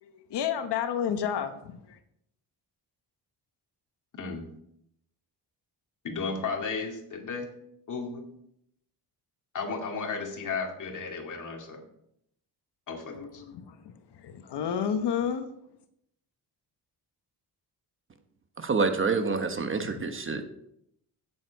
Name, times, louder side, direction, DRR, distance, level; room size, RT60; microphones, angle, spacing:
voice 1, 0.0-2.0 13.1-15.5 19.8-19.9, left 8 dB, 75° left, 8 dB, 1.1 m, -31 dB
voice 2, 4.2-4.5 6.0-7.6 7.9-8.3 9.5-11.8 12.9-13.4, left 4 dB, 45° left, 2 dB, 2.3 m, -34 dB
voice 3, 18.6-20.4, right 4 dB, 30° right, 7 dB, 1.0 m, -27 dB
15.5 x 7.4 x 4.6 m, 0.76 s
cardioid pair, 145°, 41 cm